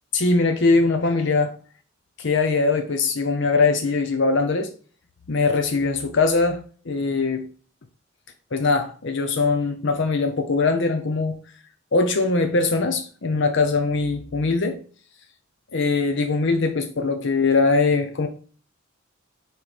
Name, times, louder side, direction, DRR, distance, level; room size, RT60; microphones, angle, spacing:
voice 1, 0.1-1.5 2.2-4.7 5.3-6.6 6.9-7.5 8.5-11.4 11.9-14.8 15.7-18.3, left 3 dB, 60° left, 0.7 m, -21 dB
7.0 x 3.2 x 5.1 m
head